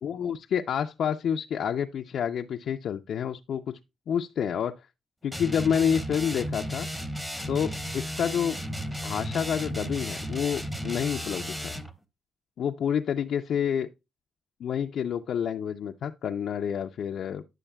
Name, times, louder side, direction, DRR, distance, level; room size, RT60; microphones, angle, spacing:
voice 1, 0.0-3.8 4.1-4.8 5.2-6.9 7.5-8.6 9.0-11.8 12.6-13.9 14.6-17.4, left 8 dB, 65° left, 0.4 m, -28 dB
sound 1, 5.3-11.9, equal, 5° right, 0.9 m, -34 dB
9.9 x 6.3 x 2.2 m
cardioid pair, 90°, 0 cm